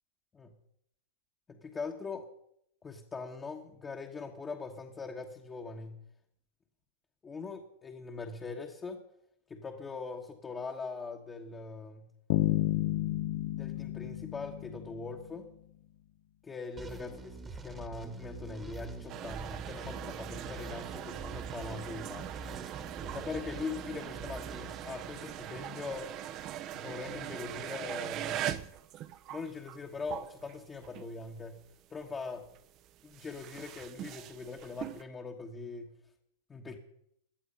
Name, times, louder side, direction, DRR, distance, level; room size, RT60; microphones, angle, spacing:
voice 1, 1.5-2.2 2.8-6.0 7.2-9.0 9.5-12.1 13.5-15.5 16.4-22.3 23.0-26.1 26.7-28.5 29.3-31.6 31.9-32.5 33.0-35.9 36.5-36.8, left 4 dB, 15° left, 0 dB, 1.2 m, -41 dB
sound 1, 12.3-15.3, left 15 dB, 60° left, 0.7 m, -31 dB
sound 2, 16.8-25.6, right 3 dB, 15° right, 1.4 m, -45 dB
sound 3, 19.1-31.3 31.6-35.0, right 11 dB, 35° right, 0.7 m, -41 dB
17.5 x 11.0 x 5.5 m, 0.74 s
supercardioid pair, 140°, 0 cm